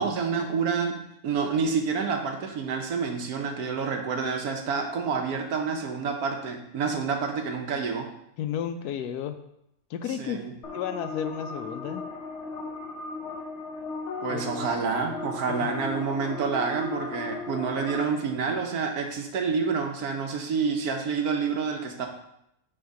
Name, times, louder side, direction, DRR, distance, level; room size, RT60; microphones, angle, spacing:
voice 1, 0.0-8.1 10.2-10.5 14.2-22.1, right 5 dB, 75° right, 4 dB, 1.3 m, -28 dB
voice 2, 8.4-9.4 9.9-12.0 14.3-14.7 15.5-15.8, left 9 dB, 90° left, 9 dB, 1.1 m, -33 dB
sound 1, 10.6-18.0, left 4 dB, 55° left, 1.0 m, -36 dB
6.6 x 3.6 x 4.7 m, 0.79 s
omnidirectional pair, 1.6 m